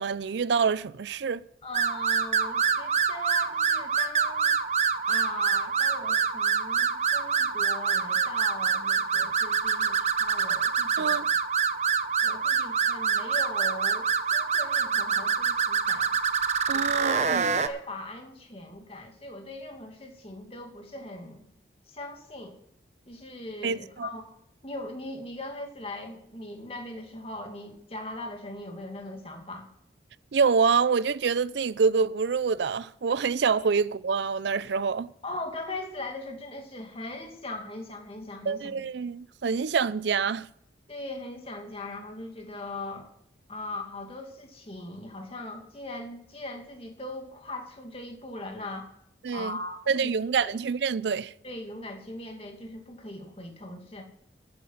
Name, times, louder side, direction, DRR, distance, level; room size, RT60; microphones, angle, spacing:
voice 1, 0.0-1.4 11.0-11.3 16.7-17.5 23.6-24.1 30.3-35.1 38.5-40.5 49.2-49.6 49.9-51.3, right 5 dB, 70° right, 0.4 m, -26 dB
voice 2, 1.6-4.6 5.0-11.1 12.2-16.1 16.7-21.5 21.9-22.6 23.1-24.2 24.6-29.7 35.2-38.9 40.9-43.1 43.5-48.9 49.3-50.1 50.4-50.6 51.4-54.0, left 2 dB, 30° left, 2.3 m, -40 dB
sound 1, 1.7-17.7, right 6 dB, 40° right, 0.8 m, -26 dB
14.0 x 8.7 x 5.6 m
head